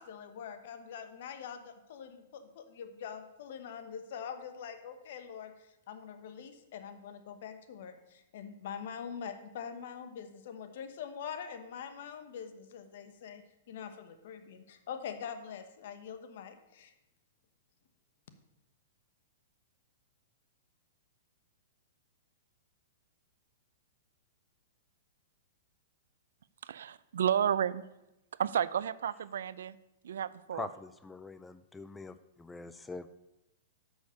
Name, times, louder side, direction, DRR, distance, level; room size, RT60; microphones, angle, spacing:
voice 1, 0.0-16.9, left 7 dB, 60° left, 1.1 m, -44 dB
voice 2, 26.7-27.8 28.4-29.7 30.0-30.7, right 9 dB, 80° right, 0.4 m, -31 dB
voice 3, 30.5-33.2, left 3 dB, 10° left, 0.3 m, -44 dB
6.6 x 6.3 x 6.8 m
hypercardioid pair, 150°, 0 cm